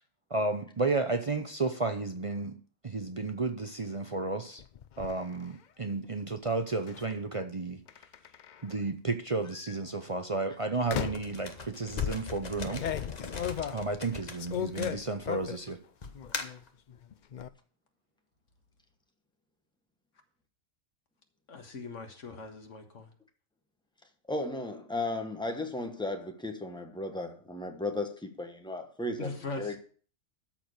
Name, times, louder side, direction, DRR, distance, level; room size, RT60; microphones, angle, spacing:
voice 1, 0.3-2.6 2.8-4.6 5.0-7.8 8.6-12.8 13.7-15.8, right 3 dB, 35° right, 0.7 m, -32 dB
sound 1, 4.6-5.1 6.9-7.1 7.9-8.7 9.5-9.8 10.9-11.4 12.0-15.7 16.1-16.6 16.9-17.5, left 9 dB, 55° left, 0.6 m, -36 dB
sound 2, 11.1-15.5 16.0-16.7, left 4 dB, 35° left, 1.1 m, -41 dB
voice 2, 21.5-23.1 29.2-29.8, left 3 dB, 90° left, 1.9 m, -40 dB
voice 3, 24.3-29.8, left 2 dB, 5° left, 1.2 m, -35 dB
13.0 x 4.6 x 6.6 m
omnidirectional pair, 1.2 m